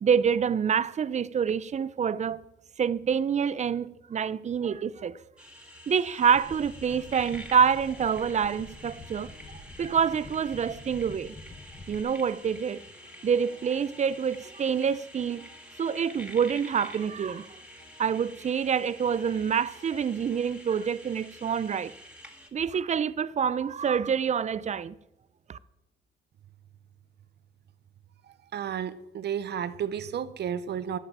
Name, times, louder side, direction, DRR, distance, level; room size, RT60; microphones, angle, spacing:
voice 1, 0.0-2.4 2.8-5.2 5.9-9.3 9.8-11.3 11.9-12.8 13.2-15.4 15.8-17.5 18.0-21.9 22.5-24.9 25.5-25.6, right 7 dB, 35° right, 0.5 m, -27 dB
sound 1, 5.4-22.5, equal, 5° right, 1.9 m, -48 dB
sound 2, 6.3-12.0, left 2 dB, 20° left, 1.0 m, -47 dB
sound 3, 6.8-20.9, left 3 dB, 35° left, 4.0 m, -60 dB
voice 2, 28.5-31.0, right 8 dB, 60° right, 0.8 m, -32 dB
11.5 x 5.6 x 7.2 m
cardioid pair, 90°, 20 cm